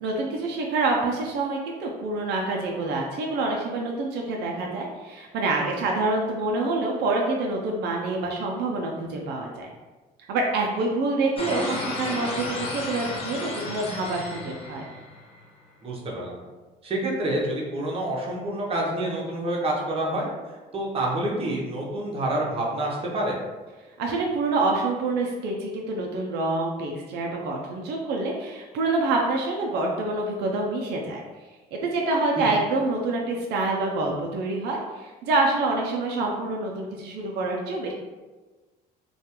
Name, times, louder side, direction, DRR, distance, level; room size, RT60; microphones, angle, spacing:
voice 1, 0.0-9.7 10.3-14.8 24.0-31.2 31.7-37.9, right 2 dB, 80° right, 0 dB, 0.4 m, -26 dB
sound 1, 11.4-15.5, left 2 dB, 35° left, 0.5 m, -33 dB
voice 2, 15.8-16.4 16.8-20.3 20.7-23.4 32.4-32.5, right 1 dB, 35° right, -3 dB, 0.7 m, -27 dB
2.3 x 2.2 x 2.8 m, 1.3 s
cardioid pair, 110°, 17 cm